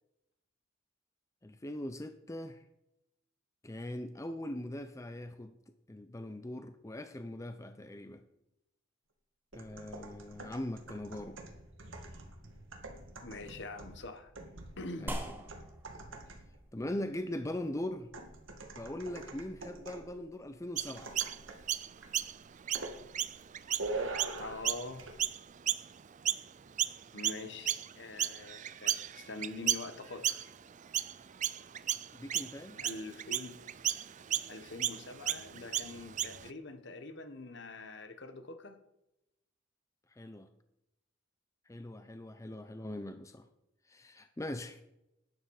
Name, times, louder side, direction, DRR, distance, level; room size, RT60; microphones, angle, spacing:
voice 1, 1.4-2.6 3.6-5.6 5.9-8.2 9.5-11.4 15.0-15.4 16.7-18.1 18.8-21.1 32.1-32.8 40.2-40.5 41.7-43.5 43.9-44.8, left 1 dB, 15° left, 0.6 m, -41 dB
sound 1, 9.5-16.6 18.1-20.2 21.0-21.7 22.0-22.2 22.7-23.0 23.8-24.7 25.0-25.2, right 2 dB, 80° right, 1.9 m, -44 dB
voice 2, 13.2-14.3 14.8-15.2 24.4-25.0 27.1-30.5 32.8-33.6 34.5-38.8, left 3 dB, 65° left, 1.4 m, -44 dB
sound 2, 15.1-23.8, right 1 dB, 10° right, 1.4 m, -48 dB
Chirp tweet, 20.8-26.5 26.8-36.5, right 11 dB, 40° right, 0.4 m, -35 dB
12.0 x 10.0 x 4.9 m
head